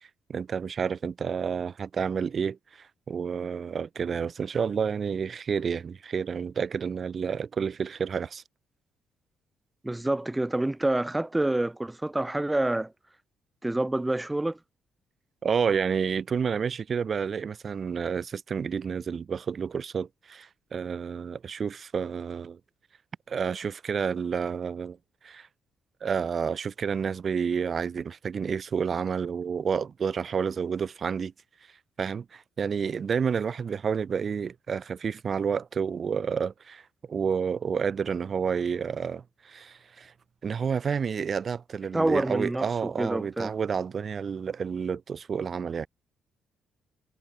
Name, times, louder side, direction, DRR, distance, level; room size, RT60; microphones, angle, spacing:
voice 1, 0.3-8.4 15.4-22.6 23.3-25.0 25.2-25.5 26.0-31.3 32.0-36.8 37.1-40.1 40.4-45.9, right 6 dB, 45° right, 1.2 m, -30 dB
voice 2, 9.8-12.9 13.6-14.6 41.9-43.5, right 1 dB, 10° right, 0.8 m, -27 dB
cardioid pair, 90°, 0 cm